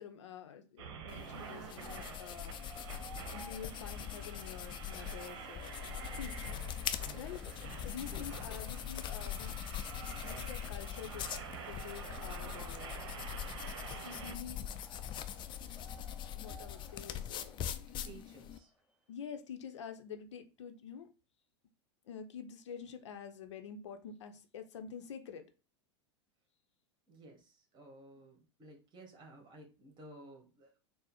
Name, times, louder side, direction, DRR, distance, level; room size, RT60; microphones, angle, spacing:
voice 1, 0.0-2.6 3.1-5.9 6.2-6.4 7.1-9.5 10.1-11.3 11.7-13.0 13.9-14.7 16.3-17.6 19.1-21.1 22.0-25.5, left 7 dB, 80° left, 0.6 m, -47 dB
sound 1, 0.8-14.4, right 6 dB, 65° right, 0.8 m, -48 dB
sound 2, 1.1-18.6, left 10 dB, 30° left, 0.4 m, -42 dB
sound 3, 1.1-18.9, right 2 dB, 5° right, 0.8 m, -59 dB
voice 2, 7.8-8.6 18.0-18.7 27.1-30.7, right 2 dB, 30° right, 1.5 m, -55 dB
4.2 x 2.0 x 4.1 m
hypercardioid pair, 95°, 15 cm